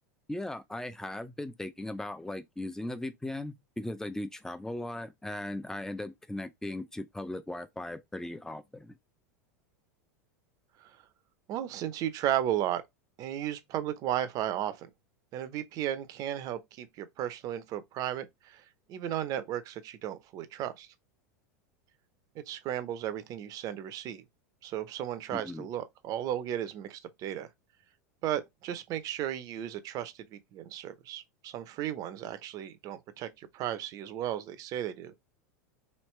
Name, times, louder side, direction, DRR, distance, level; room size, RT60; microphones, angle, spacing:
voice 1, 0.3-9.0 25.3-25.7, left 1 dB, 5° left, 0.4 m, -38 dB
voice 2, 11.5-12.8 13.2-14.9 15.3-18.6 18.9-20.9 22.4-24.2 24.6-27.5 28.2-35.1, right 11 dB, 45° right, 0.6 m, -34 dB
3.2 x 2.8 x 3.1 m
hypercardioid pair, 100°, 9 cm